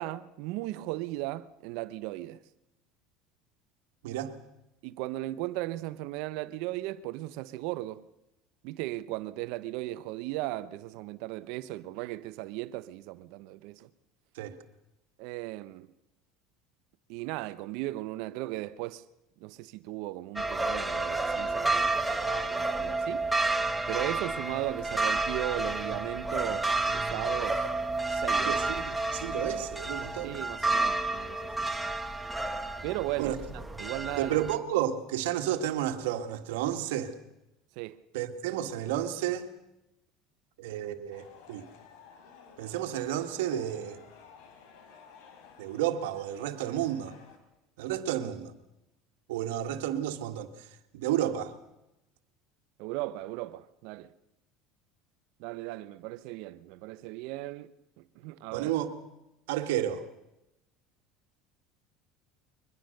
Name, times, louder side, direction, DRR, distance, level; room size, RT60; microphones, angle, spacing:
voice 1, 0.0-2.4 4.8-8.0 8.6-13.9 15.2-15.9 17.1-19.0 19.4-23.2 23.9-27.7 28.1-28.6 30.2-31.7 32.8-34.4 37.8-38.0 52.8-54.1 55.4-57.7 58.0-58.7, right 17 dB, 70° right, 0.7 m, -37 dB
voice 2, 4.0-4.3 14.3-14.5 28.4-30.4 33.2-33.4 34.2-37.1 38.1-39.5 40.6-41.7 42.6-44.0 45.6-47.1 47.8-48.5 49.3-50.5 50.9-51.5 58.5-58.9 59.5-60.0, right 11 dB, 90° right, 1.8 m, -31 dB
sound 1, 20.4-34.5, right 2 dB, 5° right, 1.2 m, -30 dB
sound 2, 41.1-47.4, left 6 dB, 75° left, 3.7 m, -54 dB
23.0 x 21.0 x 6.6 m
supercardioid pair, 125°, 0 cm